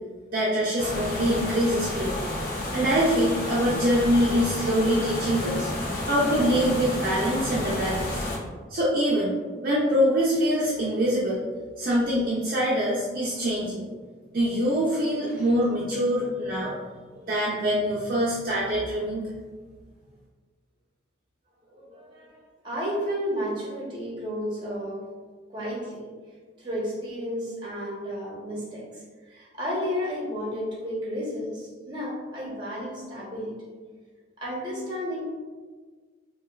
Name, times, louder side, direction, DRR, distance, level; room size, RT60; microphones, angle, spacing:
voice 1, 0.3-2.2 2.7-5.7 6.0-8.3 8.7-9.3 9.6-11.4 11.8-13.9 14.3-16.8 17.3-19.3, equal, 45° right, -7 dB, 0.5 m, -24 dB
sound 1, 0.8-8.4, left 1 dB, 50° left, 0.5 m, -31 dB
voice 2, 21.7-25.1 25.5-26.1 26.6-33.6 34.4-35.3, equal, 25° right, -6 dB, 0.9 m, -32 dB
4.3 x 2.2 x 2.3 m, 1.5 s
head